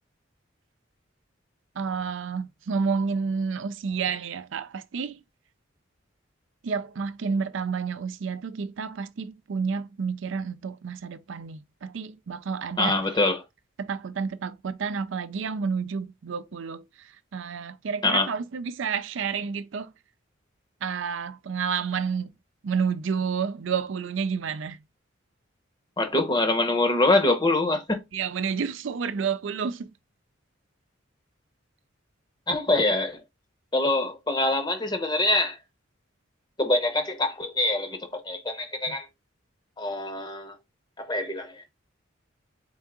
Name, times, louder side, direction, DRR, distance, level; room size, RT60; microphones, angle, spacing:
voice 1, 1.8-5.2 6.6-13.0 13.8-19.9 20.8-22.3 22.6-24.8 28.1-29.9 38.9-39.0, right 5 dB, 75° right, 0.4 m, -30 dB
voice 2, 12.8-13.4 18.0-18.3 26.0-28.0 32.5-33.2 33.7-35.6 36.6-39.1 39.8-40.5 41.0-41.6, left 2 dB, 20° left, 0.8 m, -24 dB
3.7 x 3.6 x 3.6 m
head